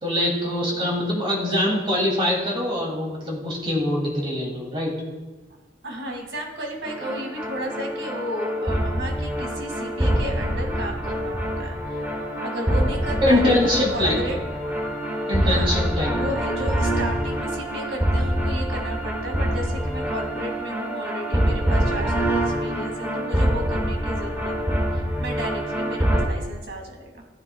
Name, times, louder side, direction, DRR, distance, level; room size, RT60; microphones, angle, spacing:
voice 1, 0.0-4.9 13.2-14.2 15.3-16.1, left 1 dB, 25° right, -3 dB, 2.9 m, -23 dB
voice 2, 5.8-12.0 12.4-14.4 15.1-27.2, equal, 70° right, 1 dB, 2.4 m, -34 dB
sound 1, 6.8-26.3, equal, 10° right, 1.2 m, -25 dB
15.0 x 9.4 x 2.4 m, 1.2 s
head